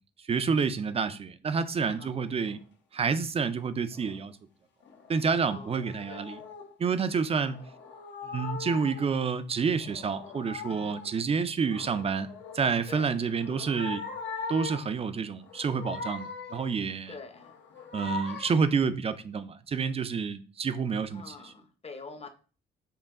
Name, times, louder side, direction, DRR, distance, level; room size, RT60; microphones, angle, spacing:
voice 1, 0.3-2.6 2.9-4.4 5.1-6.4 6.8-7.6 8.2-12.3 12.5-14.0 14.5-17.2 17.9-21.5, right 5 dB, 30° right, 0.4 m, -29 dB
sound 1, 2.3-2.6 3.9-4.3 4.8-6.7 7.4-9.2 9.7-11.2 11.6-12.9 13.3-15.0 15.4-16.8 17.3-18.8, left 5 dB, 65° left, 0.8 m, -41 dB
voice 2, 5.4-5.8 6.1-6.2 7.3-7.5 10.7-11.0 12.9-13.1 17.1-17.5 21.1-22.3, left 4 dB, 30° left, 0.7 m, -45 dB
5.5 x 2.2 x 3.6 m
cardioid pair, 90°, 20 cm